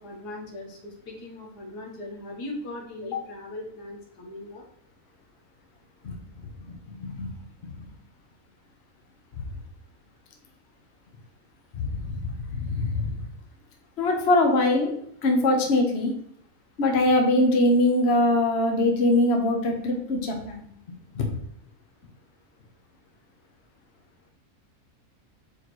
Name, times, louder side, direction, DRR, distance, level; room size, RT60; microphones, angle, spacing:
voice 1, 0.0-4.6, left 2 dB, 85° left, 0 dB, 1.9 m, -38 dB
voice 2, 6.6-7.3 7.6-7.9 9.4-9.5 11.7-13.1 14.0-14.9 15.2-16.1 16.8-21.4, left 2 dB, 45° left, 2 dB, 1.2 m, -23 dB
6.5 x 4.7 x 3.1 m, 0.69 s
omnidirectional pair, 1.6 m